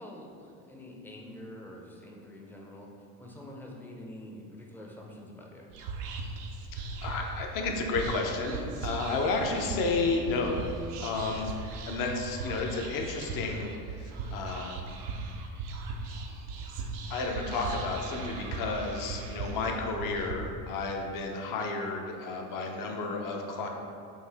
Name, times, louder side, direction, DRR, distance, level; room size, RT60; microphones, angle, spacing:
voice 1, 0.0-2.9 3.2-5.7, left 1 dB, 5° left, -2 dB, 0.5 m, -46 dB
Whispering, 5.7-20.3, right 3 dB, 75° right, 0.6 m, -38 dB
voice 2, 6.8-10.7 11.0-13.7 14.0-14.8 17.1-23.7, left 3 dB, 45° left, 2 dB, 0.7 m, -32 dB
4.7 x 2.6 x 3.4 m, 2.4 s
hypercardioid pair, 70°, 47 cm